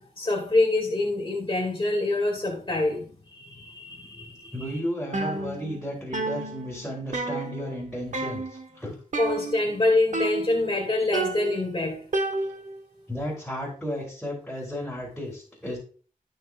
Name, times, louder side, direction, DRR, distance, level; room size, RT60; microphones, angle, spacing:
voice 1, 0.0-3.1 3.3-4.5 9.2-12.0, left 2 dB, 35° left, 2.1 m, -25 dB
voice 2, 4.5-9.0 13.1-15.8, equal, 5° left, 3.5 m, -33 dB
sound 1, 5.1-5.9 6.1-7.8 8.1-8.7 9.1-9.8 10.1-10.8 11.1-12.8, right 3 dB, 60° right, 1.1 m, -31 dB
13.5 x 6.1 x 2.4 m
wide cardioid pair, 90°, 15 cm